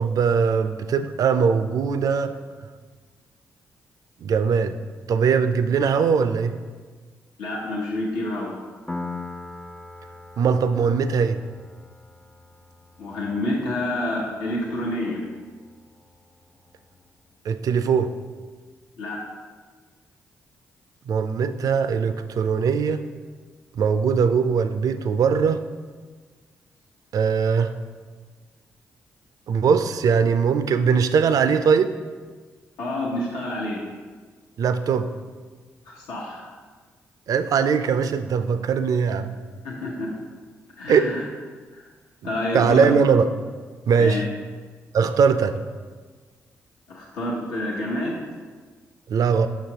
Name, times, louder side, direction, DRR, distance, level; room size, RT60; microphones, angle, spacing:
voice 1, 0.0-2.3 4.2-4.8 5.1-6.6 10.4-11.4 17.5-18.1 21.1-23.0 23.7-25.6 27.1-27.7 29.5-31.9 34.6-35.1 37.3-39.4 40.9-41.1 42.5-43.3 43.9-44.2 44.9-45.6 49.1-49.5, right 6 dB, 60° right, 11 dB, 0.4 m, -20 dB
voice 2, 7.4-8.5 13.0-15.2 19.0-19.2 32.8-33.8 35.9-36.5 39.6-40.1 40.8-41.2 41.7-41.8 42.2-42.9 44.0-44.2 46.9-48.2, left 1 dB, 80° left, -4 dB, 0.9 m, -28 dB
Piano, 8.9-16.3, left 3 dB, 15° left, 0.4 m, -41 dB
6.1 x 6.1 x 2.8 m, 1.5 s
hypercardioid pair, 40°, 7 cm